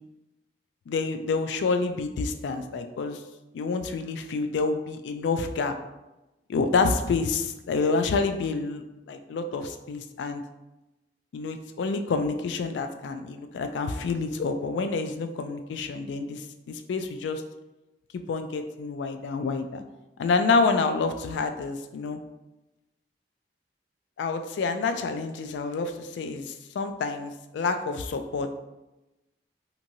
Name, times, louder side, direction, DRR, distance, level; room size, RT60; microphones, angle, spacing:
voice 1, 0.9-3.2 3.5-5.7 6.5-10.4 11.3-17.4 18.3-19.8 20.2-22.2 24.2-28.6, left 4 dB, 80° left, 7 dB, 0.3 m, -28 dB
2.9 x 2.6 x 2.6 m, 1.0 s
head